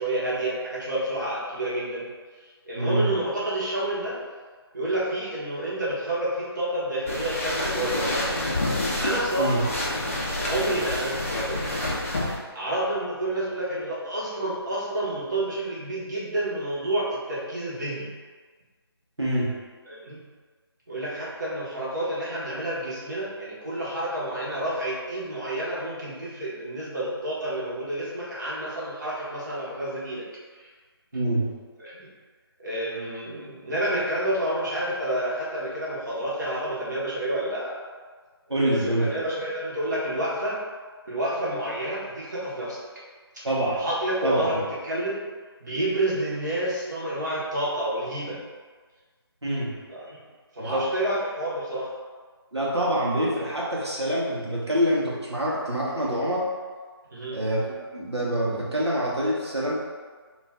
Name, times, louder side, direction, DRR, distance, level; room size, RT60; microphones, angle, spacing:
voice 1, 0.0-2.1 2.6-4.2 4.7-8.4 9.0-9.7 10.4-11.7 12.2-18.1 19.9-20.2 20.9-30.2 31.8-32.1 32.6-37.8 38.6-40.6 41.1-42.8 43.3-43.4 43.7-45.2 45.6-48.4 49.9-50.2 50.5-51.9 57.1-57.4, right 1 dB, 45° right, -8 dB, 0.9 m, -29 dB
voice 2, 2.8-3.1 9.4-9.6 19.2-19.5 31.1-31.5 38.5-39.1 43.4-43.8 44.2-44.6 49.4-49.7 50.6-50.9 52.5-56.4 57.3-57.6 57.9-59.7, right 1 dB, 85° right, -6 dB, 0.8 m, -25 dB
sound 1, 7.1-12.4, left 1 dB, 30° left, 0.4 m, -28 dB
2.4 x 2.2 x 3.4 m, 1.5 s
figure-of-eight pair, 155°, 14 cm